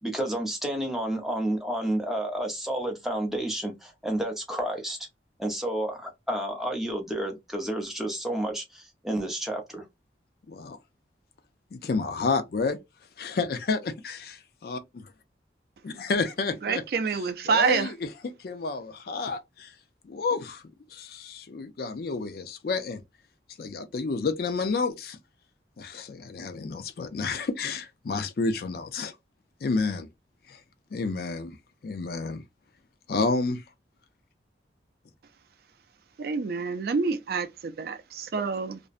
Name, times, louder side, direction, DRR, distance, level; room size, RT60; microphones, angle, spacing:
voice 1, 0.0-5.1 5.4-9.8, right 1 dB, ahead, 0.5 m, -30 dB
voice 2, 10.5-10.8 11.7-12.8 13.2-15.0 15.8-16.8 17.5-17.9 18.2-19.7 20.0-20.6 20.9-23.0 23.6-25.2 25.8-29.1 29.6-30.1 30.5-30.6 30.9-31.6 31.8-32.4 33.1-33.6, left 4 dB, 55° left, 0.4 m, -30 dB
voice 3, 16.6-17.9 36.2-38.8, right 5 dB, 55° right, 0.3 m, -27 dB
2.5 x 2.1 x 2.4 m
head